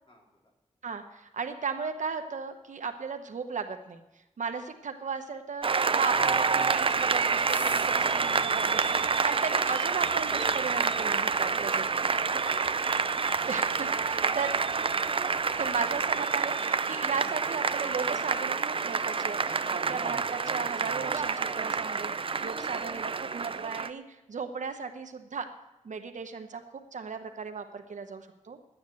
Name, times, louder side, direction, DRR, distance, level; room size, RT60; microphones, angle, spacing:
voice 1, 0.1-0.5 4.5-4.7 11.8-13.3 14.2-14.4 27.7-27.9, left 1 dB, 45° left, -1 dB, 3.5 m, -58 dB
voice 2, 0.8-4.0 4.4-12.1 13.5-14.5 15.6-18.6 18.8-24.0 24.3-25.5 25.8-26.6 26.9-28.6, right 5 dB, 90° right, 7 dB, 1.1 m, -36 dB
Applause, 5.6-23.9, right 5 dB, 45° right, 0.5 m, -28 dB
sound 1, 6.1-16.1, left 1 dB, 15° left, 1.1 m, -52 dB
11.5 x 9.4 x 7.8 m, 0.97 s
wide cardioid pair, 80°, 12 cm